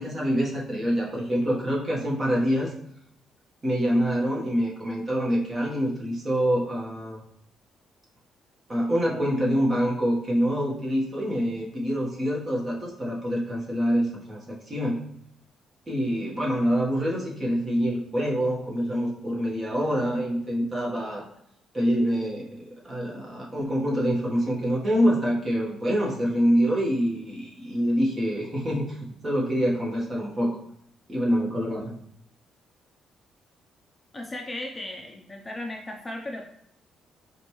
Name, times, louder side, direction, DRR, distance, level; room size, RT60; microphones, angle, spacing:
voice 1, 0.0-2.7 3.6-7.2 8.7-15.0 15.9-21.3 21.7-30.6 31.1-31.9, equal, 30° right, -4 dB, 1.3 m, -26 dB
voice 2, 34.1-36.5, left 1 dB, 20° left, 1 dB, 0.5 m, -36 dB
5.0 x 2.5 x 3.1 m, 0.69 s
cardioid pair, 90°, 0 cm